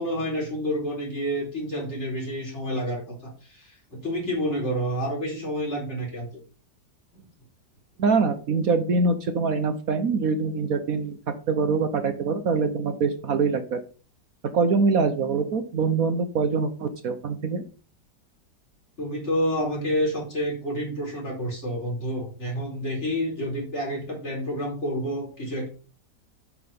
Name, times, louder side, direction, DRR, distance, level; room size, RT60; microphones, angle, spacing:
voice 1, 0.0-6.3 7.1-7.2 19.0-25.7, equal, 40° left, -3 dB, 5.1 m, -29 dB
voice 2, 8.0-11.2 11.5-13.8 14.5-17.6, right 4 dB, 60° right, 8 dB, 1.3 m, -24 dB
8.6 x 6.3 x 5.4 m, 0.37 s
omnidirectional pair, 1.8 m